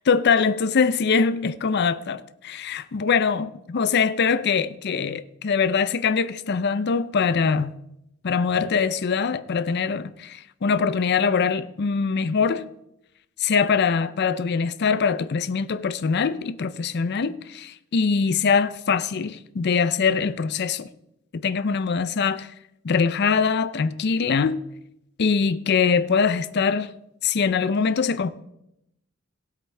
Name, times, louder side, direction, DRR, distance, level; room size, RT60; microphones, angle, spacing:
voice 1, 0.0-7.7 8.2-12.7 13.4-20.9 21.3-22.5 22.8-24.6 25.2-26.9 27.2-28.3, left 5 dB, 50° left, 0.5 m, -23 dB
17.5 x 8.1 x 3.3 m
head